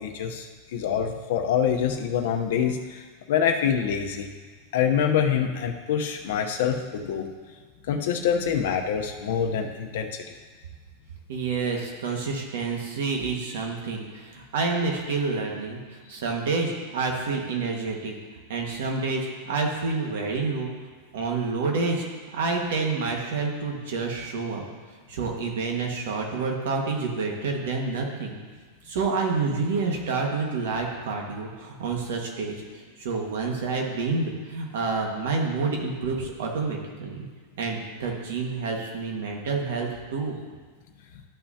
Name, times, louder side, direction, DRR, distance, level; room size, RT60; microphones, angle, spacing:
voice 1, 0.0-4.3 4.7-7.3 7.9-10.2, left 8 dB, 70° left, 4 dB, 0.8 m, -25 dB
voice 2, 11.3-18.1 18.5-20.7 21.1-22.0 22.3-24.6 25.1-28.4 28.9-32.6 33.0-37.3 37.6-40.4, right 4 dB, 70° right, 1 dB, 1.6 m, -28 dB
13.0 x 5.7 x 2.8 m, 1.5 s
supercardioid pair, 165°, 0 cm